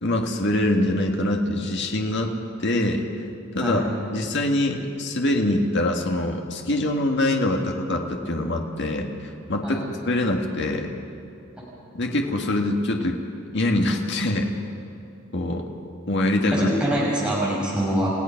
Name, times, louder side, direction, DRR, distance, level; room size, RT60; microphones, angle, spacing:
voice 1, 0.0-2.3 2.6-3.2 3.5-3.8 4.1-9.1 9.5-10.9 11.9-13.2 13.5-14.5 15.3-15.6 16.1-16.7, left 1 dB, 60° left, 2 dB, 1.8 m, -24 dB
voice 2, 16.4-18.1, right 1 dB, 5° right, -6 dB, 6.1 m, -25 dB
30.0 x 16.5 x 5.9 m, 2.7 s
head